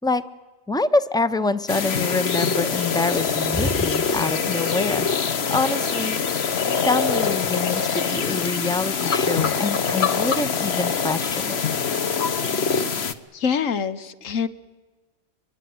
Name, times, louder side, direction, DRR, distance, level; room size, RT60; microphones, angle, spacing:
voice 1, 0.7-5.1 5.5-6.5 6.8-11.6, left 3 dB, 5° left, 12 dB, 0.5 m, -25 dB
sound 1, 1.7-13.1, left 6 dB, 55° left, 1.2 m, -24 dB
voice 2, 13.3-14.5, left 6 dB, 90° left, 12 dB, 1.4 m, -25 dB
24.0 x 22.5 x 9.4 m, 1.3 s
omnidirectional pair, 1.3 m